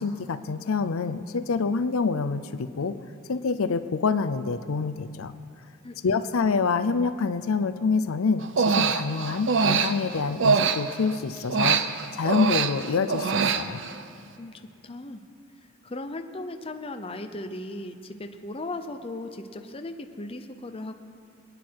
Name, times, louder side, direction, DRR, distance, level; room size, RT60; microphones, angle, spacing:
voice 1, 0.0-2.9 3.3-5.3 6.0-11.8 12.1-13.8, left 4 dB, 80° left, 11 dB, 0.5 m, -26 dB
voice 2, 5.8-6.2 14.4-15.2 15.8-20.9, left 2 dB, 25° left, 7 dB, 0.7 m, -37 dB
Human voice, 8.4-11.1 11.5-14.0, right 5 dB, 60° right, 0.6 m, -24 dB
24.5 x 9.4 x 4.7 m, 2.5 s
head